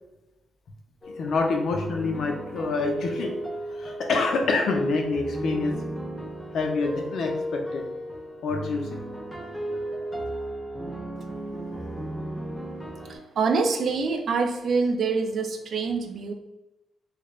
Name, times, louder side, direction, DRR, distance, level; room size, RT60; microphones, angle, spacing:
sound 1, 1.0-13.2, right 1 dB, 10° left, 0.5 m, -34 dB
voice 1, 1.2-3.3 3.7-5.7 6.5-7.9 8.4-8.9, left 3 dB, 65° left, 3 dB, 0.6 m, -26 dB
voice 2, 13.0-16.3, right 4 dB, 55° right, 5 dB, 0.4 m, -26 dB
3.3 x 2.4 x 3.1 m, 0.94 s
cardioid pair, 130°, 0 cm